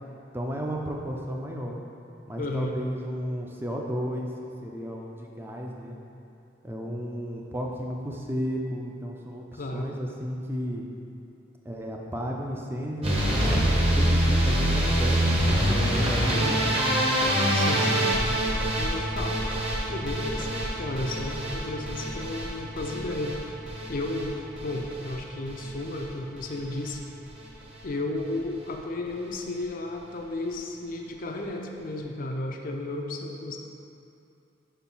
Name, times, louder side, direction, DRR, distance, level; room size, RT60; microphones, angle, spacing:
voice 1, 0.3-1.8 2.3-4.3 4.6-6.0 6.6-10.9 11.6-16.6, equal, 10° right, 0 dB, 0.6 m, -33 dB
voice 2, 2.4-2.7 9.6-9.9 16.3-16.6 17.5-18.2 18.8-19.5 19.9-23.4 23.9-27.0 27.8-33.6, left 2 dB, 45° left, 2 dB, 0.5 m, -33 dB
sound 1, 13.0-25.2 25.5-26.0 26.4-26.9 27.3-27.5 27.8-27.9 28.2-28.3, right 1 dB, 30° right, 1.1 m, -25 dB
5.4 x 4.4 x 5.5 m, 2.8 s
head